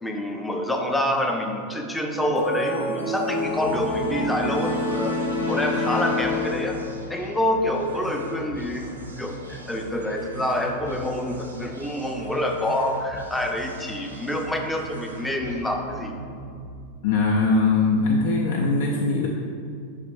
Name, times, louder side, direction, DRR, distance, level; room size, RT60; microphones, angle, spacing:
voice 1, 0.0-5.2 5.5-6.8 7.1-16.2, left 1 dB, 5° left, 2 dB, 0.6 m, -27 dB
sound 1, 2.4-7.0, left 2 dB, 85° left, 1.2 m, -27 dB
sound 2, 3.3-17.1, right 2 dB, 80° right, 0.7 m, -40 dB
voice 2, 17.0-19.3, left 3 dB, 55° left, -1 dB, 0.5 m, -21 dB
5.8 x 3.6 x 4.7 m, 2.3 s
figure-of-eight pair, 90°, 0 cm